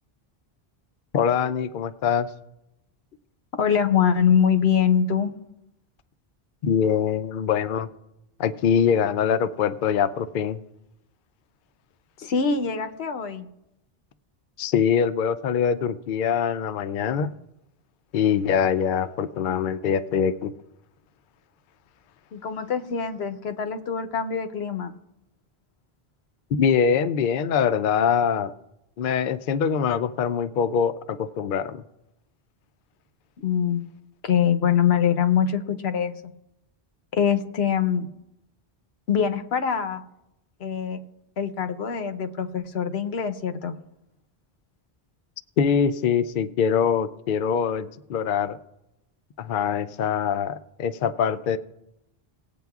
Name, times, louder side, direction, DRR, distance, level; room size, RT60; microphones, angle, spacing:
voice 1, 1.1-2.3 6.6-7.9 8.4-10.6 14.6-17.3 18.1-20.5 26.6-28.5 29.0-31.8 45.6-48.6 49.4-51.6, left 7 dB, 60° left, 10 dB, 0.6 m, -23 dB
voice 2, 3.6-5.3 12.2-13.5 22.3-24.9 33.4-33.8 34.2-36.1 37.1-38.1 39.1-40.0 40.6-41.0 41.4-43.7, left 7 dB, 80° left, 9 dB, 1.0 m, -23 dB
19.0 x 8.4 x 2.3 m, 0.86 s
omnidirectional pair, 1.0 m